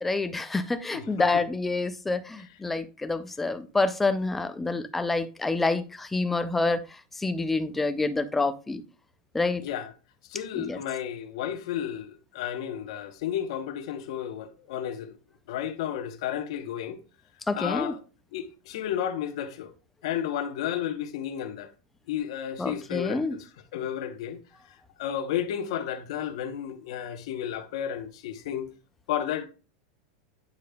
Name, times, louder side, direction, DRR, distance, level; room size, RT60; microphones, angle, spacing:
voice 1, 0.0-8.8 9.3-9.6 10.6-10.8 17.5-18.0 22.6-23.4, left 3 dB, 5° left, 0.3 m, -27 dB
voice 2, 0.9-1.4 9.6-9.9 10.3-15.2 15.5-17.0 17.5-18.0 18.3-19.7 20.0-21.7 22.1-24.4 25.0-28.7 29.1-29.5, left 10 dB, 60° left, 0.9 m, -32 dB
9.5 x 5.0 x 2.2 m
supercardioid pair, 180°, 3 cm